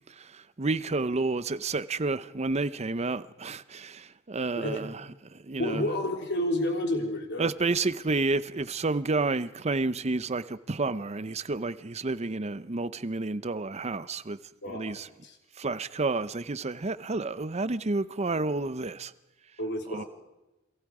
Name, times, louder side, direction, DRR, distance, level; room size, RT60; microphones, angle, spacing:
voice 1, 0.1-5.0 5.3-5.9 7.4-14.4 14.7-15.1 15.6-19.1 19.9-20.0, right 3 dB, 30° right, 0.7 m, -30 dB
voice 2, 4.6-4.9 5.6-7.5 14.6-15.4 19.6-20.1, left 1 dB, 55° left, 3.8 m, -30 dB
28.0 x 22.5 x 4.9 m
head